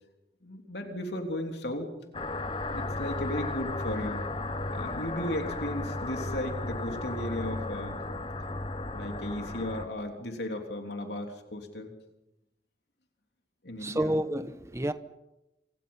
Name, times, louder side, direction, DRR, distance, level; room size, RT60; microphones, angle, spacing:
voice 1, 0.4-1.9 2.7-4.3 4.7-8.0 8.9-11.9 13.6-14.1, left 1 dB, 70° left, 3.4 m, -35 dB
sound 1, 2.1-9.9, left 2 dB, 30° left, 1.2 m, -35 dB
voice 2, 13.8-14.9, right 1 dB, 15° right, 1.1 m, -29 dB
27.5 x 27.0 x 5.6 m
head